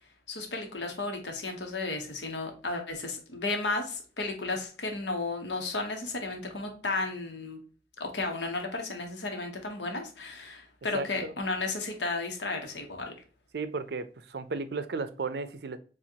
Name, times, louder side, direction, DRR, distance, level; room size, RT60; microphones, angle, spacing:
voice 1, 0.3-7.6 8.0-13.1, left 3 dB, 85° left, 1.2 m, -33 dB
voice 2, 10.9-11.3 13.5-15.8, right 3 dB, 65° right, 0.5 m, -34 dB
7.1 x 2.5 x 2.8 m
head